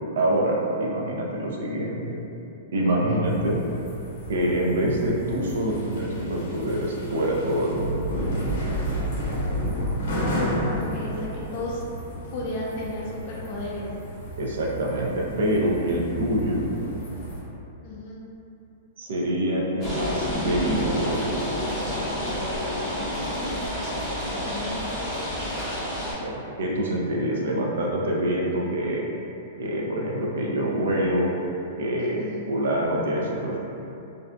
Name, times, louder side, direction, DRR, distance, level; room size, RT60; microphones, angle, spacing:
voice 1, 0.1-2.2 2.7-3.6 4.3-8.1 14.4-16.6 19.0-21.4 26.2-29.1 29.6-31.3 31.8-33.6, right 1 dB, 75° right, -2 dB, 0.4 m, -25 dB
voice 2, 2.9-3.2 10.7-11.8 12.3-13.9 17.8-18.2 24.2-24.8 32.0-32.4, left 2 dB, 35° left, -5 dB, 0.4 m, -34 dB
sound 1, 3.2-17.4, equal, 70° left, 0.6 m, -32 dB
sound 2, 19.8-26.1, equal, ahead, 0.6 m, -29 dB
2.5 x 2.1 x 2.4 m, 2.8 s
supercardioid pair, 170°, 0 cm